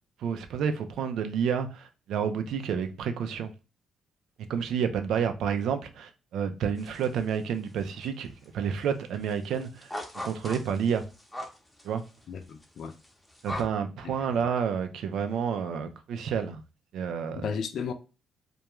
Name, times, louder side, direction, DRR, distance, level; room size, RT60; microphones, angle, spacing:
voice 1, 0.2-3.5 4.5-9.9 10.2-11.0 11.8-12.0 13.4-16.6 16.9-17.5, right 7 dB, 75° right, 0.4 m, -30 dB
sound 1, 6.8-7.4 7.7-8.4 8.7-8.8 9.1-13.6, left 1 dB, 10° left, 0.6 m, -40 dB
voice 2, 12.3-12.9 14.4-14.5 17.3-17.9, left 6 dB, 65° left, 0.4 m, -34 dB
2.3 x 2.2 x 2.9 m
cardioid pair, 90°, 0 cm